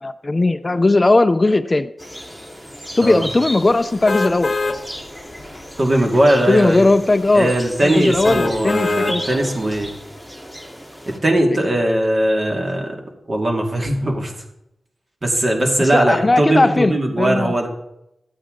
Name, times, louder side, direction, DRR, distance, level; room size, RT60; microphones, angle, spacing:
voice 1, 0.0-1.9 3.0-4.8 6.5-9.3 15.8-17.5, left 2 dB, 30° left, 12 dB, 0.5 m, -17 dB
sound 1, 2.0-11.2, equal, 10° right, 2.1 m, -34 dB
sound 2, 4.1-4.8 5.3-5.4 8.2-9.2 9.7-9.8, left 3 dB, 55° left, 0.8 m, -23 dB
voice 2, 5.8-6.8 7.3-9.9 11.1-12.9 13.3-14.3 15.2-17.7, right 1 dB, 45° right, 2 dB, 2.2 m, -19 dB
12.0 x 8.5 x 3.8 m, 0.84 s
cardioid pair, 60°, 0 cm